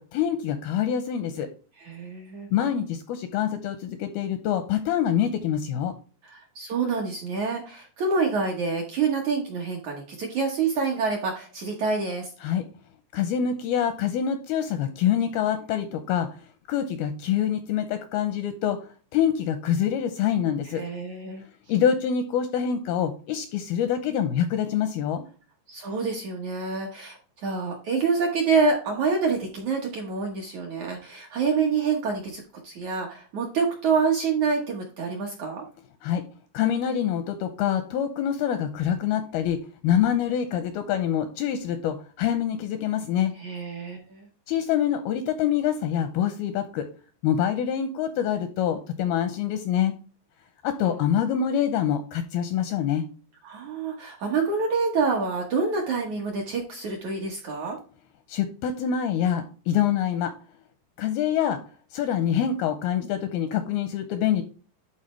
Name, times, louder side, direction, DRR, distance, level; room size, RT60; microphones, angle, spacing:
voice 1, 0.0-1.5 2.5-5.9 12.4-12.6 13.1-16.3 16.7-18.8 19.1-20.8 21.7-25.2 36.0-36.2 36.5-43.3 44.5-46.9 47.2-49.9 50.6-53.1 58.3-60.3 61.0-61.6 61.9-64.4, left 9 dB, 85° left, 9 dB, 2.2 m, -25 dB
voice 2, 1.8-2.5 6.2-12.3 20.7-21.4 25.7-35.6 43.4-44.3 53.4-57.8, right 4 dB, 65° right, 0 dB, 1.9 m, -27 dB
11.5 x 4.3 x 3.2 m, 0.38 s
omnidirectional pair, 5.0 m